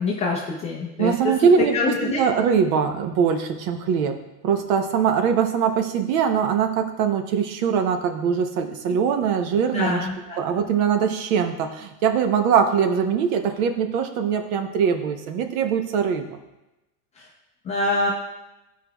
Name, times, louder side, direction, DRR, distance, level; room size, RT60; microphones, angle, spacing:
voice 1, 0.0-2.2 9.7-10.4 17.2-17.3 17.6-18.1, left 3 dB, 15° left, -3 dB, 0.4 m, -25 dB
voice 2, 1.0-4.1 4.4-10.1 10.4-16.3, right 7 dB, 60° right, 7 dB, 0.9 m, -22 dB
11.5 x 4.7 x 2.3 m, 0.98 s
supercardioid pair, 140°, 48 cm